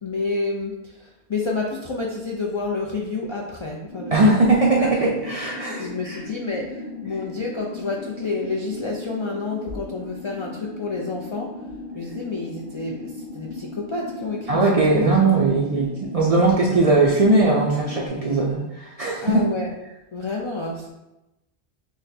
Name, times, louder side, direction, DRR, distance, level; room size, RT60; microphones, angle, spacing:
voice 1, 0.0-4.3 4.8-4.9 5.8-11.6 11.9-15.1 19.2-19.7 20.1-20.9, left 3 dB, 55° left, -1 dB, 0.3 m, -29 dB
sound 1, 3.9-18.1, left 2 dB, 85° left, 1.2 m, -37 dB
voice 2, 4.1-6.2 14.5-19.4, right 2 dB, 50° right, -3 dB, 0.4 m, -19 dB
6.0 x 2.2 x 2.7 m, 0.95 s
omnidirectional pair, 1.1 m